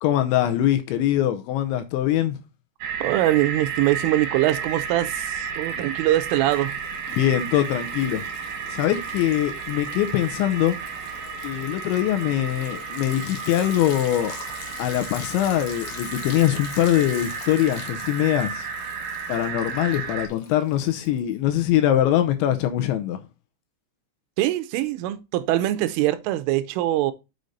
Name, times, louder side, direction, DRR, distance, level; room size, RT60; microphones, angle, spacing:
voice 1, 0.0-2.4 7.1-8.3 8.7-10.8 11.4-14.3 14.8-18.7 19.3-23.2, left 12 dB, 80° left, 2.8 m, -23 dB
sound 1, 2.8-20.3, right 6 dB, 60° right, 2.7 m, -33 dB
voice 2, 3.0-6.8 24.4-27.1, right 15 dB, 90° right, 3.2 m, -23 dB
Liquid, 4.2-4.8 5.1-21.3, left 6 dB, 60° left, 2.4 m, -43 dB
6.5 x 6.4 x 4.0 m
omnidirectional pair, 5.7 m